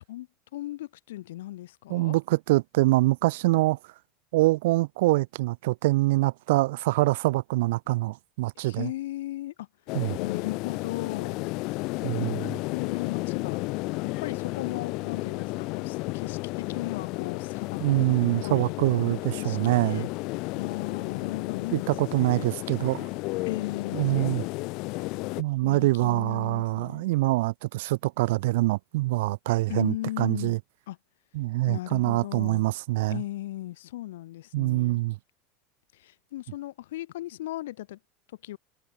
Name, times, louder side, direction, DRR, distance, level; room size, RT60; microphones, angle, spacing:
voice 1, 0.5-2.1 8.6-9.7 10.2-11.4 12.7-13.6 14.0-18.1 18.4-18.8 19.4-20.1 20.5-22.5 23.5-24.5 25.6-27.1 29.7-30.6 30.9-31.0 31.7-32.6 33.1-35.0 36.0-38.0 38.4-38.6, left 15 dB, 75° left, 2.4 m, -37 dB
voice 2, 1.9-3.8 4.3-8.9 9.9-10.2 12.0-12.6 17.8-20.1 21.7-23.1 23.9-24.4 25.4-30.6 31.3-33.2 34.5-35.2, right 20 dB, 70° right, 0.9 m, -25 dB
sound 1, 9.9-25.4, left 24 dB, 60° left, 0.5 m, -33 dB
hypercardioid pair, 80°, 0 cm